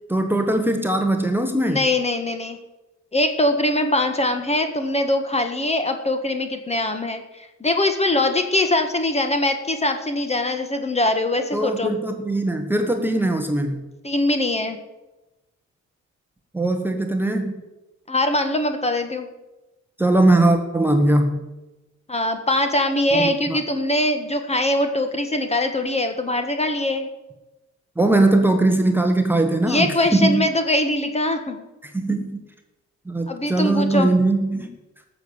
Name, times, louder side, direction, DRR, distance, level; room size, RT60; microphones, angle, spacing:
voice 1, 0.1-1.8 11.5-13.8 16.5-17.5 20.0-21.4 23.1-23.6 28.0-30.5 31.8-32.4 33.1-34.7, right 2 dB, 5° right, 4 dB, 1.3 m, -20 dB
voice 2, 1.7-2.6 3.1-11.9 14.0-14.8 18.1-19.3 22.1-27.1 29.6-31.6 33.3-34.1, left 1 dB, 20° left, 7 dB, 1.6 m, -22 dB
14.0 x 6.9 x 8.1 m, 1.1 s
cardioid pair, 90°, 30 cm